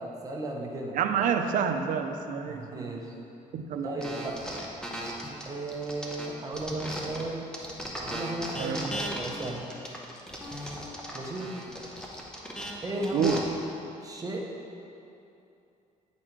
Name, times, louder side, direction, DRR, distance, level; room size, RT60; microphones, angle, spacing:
voice 1, 0.0-1.0 2.4-3.1 3.8-4.4 5.5-7.5 8.0-9.7 11.1-11.5 12.8-13.4 14.0-14.5, right 2 dB, 25° right, -1 dB, 0.9 m, -35 dB
voice 2, 0.9-3.2 3.5-4.0 8.6-8.9 13.1-13.4, right 7 dB, 70° right, 6 dB, 0.5 m, -29 dB
sound 1, 4.0-7.2 7.5-13.4, equal, 5° left, 0.8 m, -37 dB
8.7 x 4.2 x 4.5 m, 2.7 s
cardioid pair, 135°, 14 cm